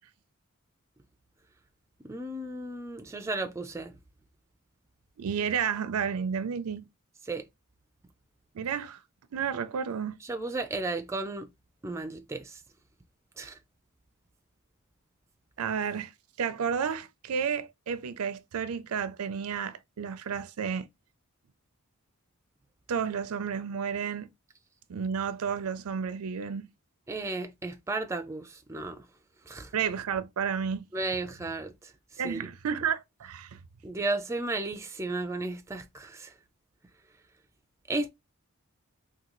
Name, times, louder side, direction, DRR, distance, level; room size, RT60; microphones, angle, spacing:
voice 1, 2.0-3.9 7.3-7.4 10.3-11.5 11.8-12.5 13.4-13.6 27.1-29.0 29.5-29.7 30.9-31.7 32.2-32.5 33.8-36.3 37.9-38.1, right 2 dB, 15° right, 0.3 m, -34 dB
voice 2, 5.2-6.9 8.5-9.0 9.3-10.2 15.6-16.1 16.4-20.9 22.9-24.3 24.9-26.7 29.7-30.9 32.2-33.6, right 7 dB, 85° right, 0.4 m, -31 dB
3.7 x 2.2 x 3.0 m
head